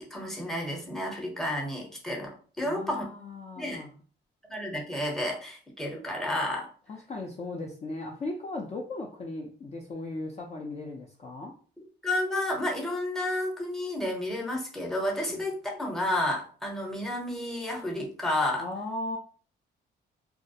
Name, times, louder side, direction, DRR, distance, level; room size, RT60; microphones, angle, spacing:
voice 1, 0.0-3.0 3.6-3.8 4.5-6.7 12.0-18.6, left 1 dB, ahead, 0.8 m, -31 dB
voice 2, 2.6-3.9 6.9-11.5 15.3-15.4 18.6-19.2, left 2 dB, 35° left, 0.5 m, -37 dB
2.3 x 2.0 x 2.6 m
cardioid pair, 90°, 20 cm